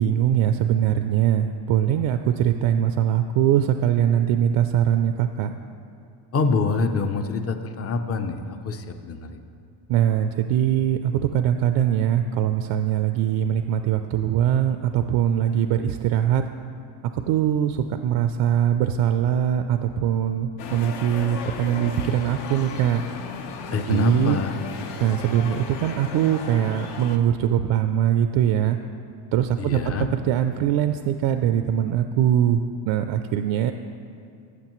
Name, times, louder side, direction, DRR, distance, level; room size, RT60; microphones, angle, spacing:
voice 1, 0.0-5.6 9.9-16.4 17.1-23.0 23.9-24.4 25.0-28.8 29.3-29.8 30.1-33.7, right 10 dB, 70° right, 8 dB, 0.5 m, -22 dB
voice 2, 6.3-9.4 23.7-24.6 29.6-30.1, left 4 dB, 30° left, 7 dB, 0.6 m, -25 dB
sound 1, 20.6-27.2, left 5 dB, 60° left, 0.8 m, -35 dB
14.5 x 7.3 x 3.0 m, 2.5 s
cardioid pair, 125°, 46 cm